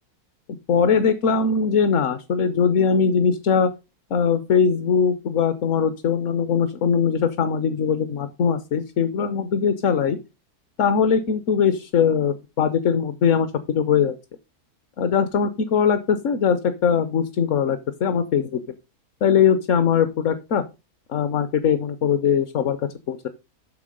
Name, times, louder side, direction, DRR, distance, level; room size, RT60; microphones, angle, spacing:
voice 1, 0.7-3.7 4.1-10.2 10.8-14.1 15.0-18.6 19.2-20.6 21.1-22.8 23.1-23.3, left 7 dB, 60° left, 11 dB, 1.1 m, -21 dB
8.5 x 5.8 x 5.1 m, 0.27 s
omnidirectional pair, 1.6 m